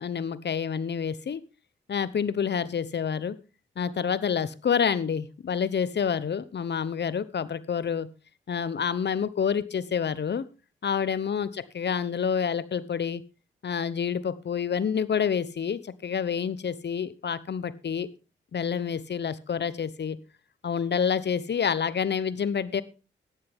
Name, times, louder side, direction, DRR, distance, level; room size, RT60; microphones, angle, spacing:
voice 1, 0.0-1.4 1.9-3.4 3.8-8.1 8.5-10.4 10.8-13.2 13.6-18.1 18.5-20.2 20.6-22.8, left 7 dB, 55° left, 17 dB, 1.0 m, -28 dB
14.0 x 9.9 x 3.6 m, 0.32 s
supercardioid pair, 45°, 21 cm